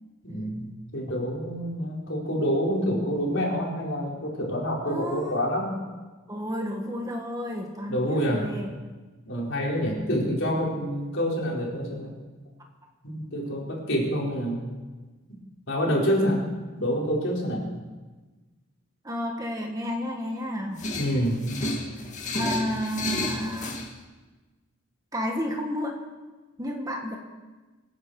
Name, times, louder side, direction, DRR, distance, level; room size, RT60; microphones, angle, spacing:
voice 1, 0.2-5.8 7.9-8.5 9.3-12.1 13.0-14.6 15.3-15.4 15.7-16.4 16.8-17.7 21.0-21.4, equal, 60° left, -3 dB, 4.4 m, -27 dB
voice 2, 4.8-5.5 6.3-8.7 19.0-20.8 22.3-23.8 25.1-25.9 26.6-27.2, equal, 15° right, 2 dB, 1.7 m, -31 dB
sound 1, 20.8-23.9, left 2 dB, 35° left, 2.2 m, -31 dB
26.0 x 10.5 x 4.8 m, 1.3 s
head